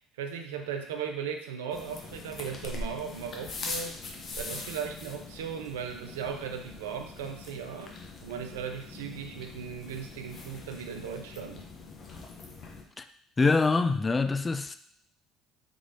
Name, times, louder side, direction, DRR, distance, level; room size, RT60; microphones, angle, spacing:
voice 1, 0.2-4.0 4.4-8.0 8.2-11.7, right 7 dB, 85° right, 0.4 m, -37 dB
sound 1, 1.7-12.8, left 3 dB, 50° left, 0.7 m, -42 dB
voice 2, 13.4-14.8, left 4 dB, 25° left, 0.3 m, -24 dB
3.6 x 3.0 x 2.7 m
hypercardioid pair, 65°, 0 cm